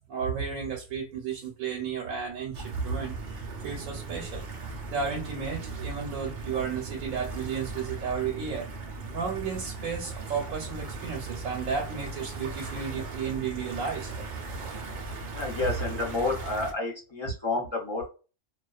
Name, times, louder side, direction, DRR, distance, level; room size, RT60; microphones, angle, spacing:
voice 1, 0.1-4.4 4.9-8.7 9.1-14.1, right 6 dB, 90° right, 1.0 m, -33 dB
sound 1, 2.5-16.7, right 3 dB, 60° right, 0.5 m, -38 dB
voice 2, 15.3-18.1, left 3 dB, 35° left, 0.4 m, -30 dB
2.4 x 2.2 x 2.3 m
omnidirectional pair, 1.4 m